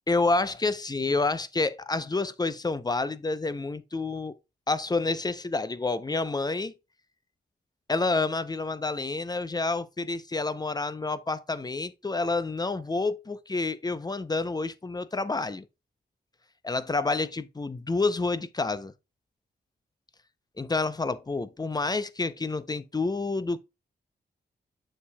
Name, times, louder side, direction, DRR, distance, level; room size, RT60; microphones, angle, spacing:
voice 1, 0.1-4.3 4.7-6.7 7.9-15.6 16.6-18.9 20.6-23.6, left 3 dB, 20° left, 0.6 m, -28 dB
7.0 x 6.6 x 2.2 m
cardioid pair, 75°, 18 cm